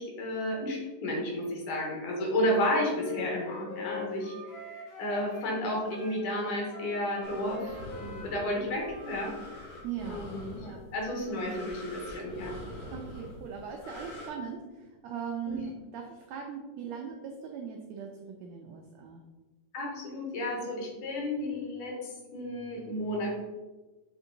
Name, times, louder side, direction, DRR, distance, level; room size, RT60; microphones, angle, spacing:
voice 1, 0.0-9.7 10.0-12.5 15.5-15.6 19.7-23.3, left 1 dB, 70° left, -1 dB, 2.8 m, -32 dB
Wind instrument woodwind instrument, 2.5-5.6 5.9-9.2, left 3 dB, 55° left, 1.3 m, -43 dB
sound 1, 7.2-14.3, left 1 dB, 90° left, 3.2 m, -45 dB
voice 2, 9.8-10.3 10.6-10.8 12.9-19.2, right 7 dB, 80° right, 1 dB, 1.5 m, -40 dB
7.4 x 3.6 x 3.8 m, 1.2 s
omnidirectional pair, 3.7 m